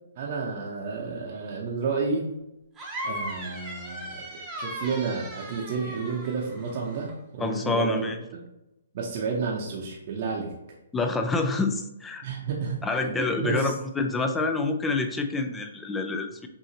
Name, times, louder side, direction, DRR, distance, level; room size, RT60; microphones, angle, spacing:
voice 1, 0.2-2.2 3.0-8.1 8.9-10.5 12.2-13.7, right 4 dB, 45° right, -2 dB, 0.8 m, -31 dB
sound 1, 2.8-7.1, equal, 10° right, 0.8 m, -37 dB
voice 2, 7.4-8.2 10.9-12.2 12.8-16.5, left 3 dB, 10° left, 5 dB, 0.4 m, -27 dB
5.6 x 2.7 x 2.9 m, 0.91 s
hypercardioid pair, 155°, 0 cm